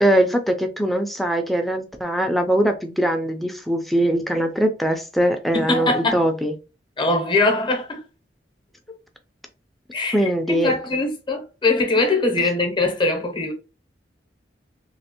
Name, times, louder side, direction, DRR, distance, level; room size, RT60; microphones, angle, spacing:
voice 1, 0.0-6.5 10.1-10.7, right 1 dB, ahead, 0.4 m, -21 dB
voice 2, 5.5-6.2 7.0-8.0 9.9-13.5, left 2 dB, 25° left, 0.8 m, -22 dB
3.2 x 2.8 x 2.9 m
head